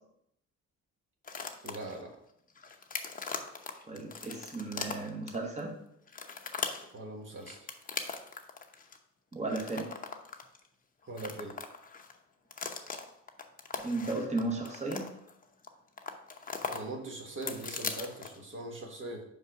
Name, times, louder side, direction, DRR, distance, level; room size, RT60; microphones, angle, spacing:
sound 1, 1.2-2.0 2.5-5.6 6.1-6.9 7.4-9.0 9.3-10.7 11.0-12.1 12.5-15.7 16.0-16.8 17.1-18.5, left 5 dB, 30° left, 0.8 m, -40 dB
voice 1, 1.6-2.2 6.9-7.7 11.1-11.6 16.6-19.2, right 2 dB, 40° right, 1 dB, 1.4 m, -41 dB
voice 2, 3.9-5.8 9.3-9.9 13.8-15.1, right 2 dB, 20° right, 0 dB, 1.2 m, -34 dB
5.5 x 4.9 x 4.7 m, 0.75 s
cardioid pair, 90°, 30 cm